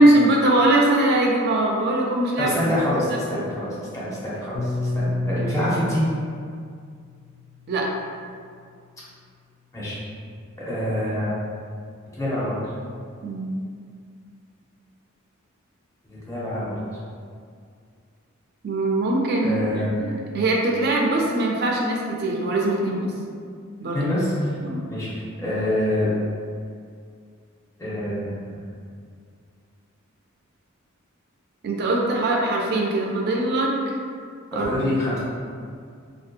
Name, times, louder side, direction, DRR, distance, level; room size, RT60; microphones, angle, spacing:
voice 1, 0.0-2.6 3.3-3.7 5.2-5.4 7.7-7.9 13.2-13.6 18.6-23.1 23.8-24.1 24.6-24.8 31.6-33.9 34.5-34.8, right 1 dB, 50° right, -1 dB, 0.4 m, -21 dB
voice 2, 2.4-6.0 9.7-10.0 10.7-11.4 12.2-12.6 16.0-16.8 19.4-20.0 23.9-24.6 24.9-26.1 27.8-28.6 34.5-35.2, left 1 dB, 15° left, -8 dB, 0.6 m, -26 dB
Piano, 4.5-9.0, left 1 dB, 65° left, 0.4 m, -31 dB
2.7 x 2.1 x 2.4 m, 2.2 s
head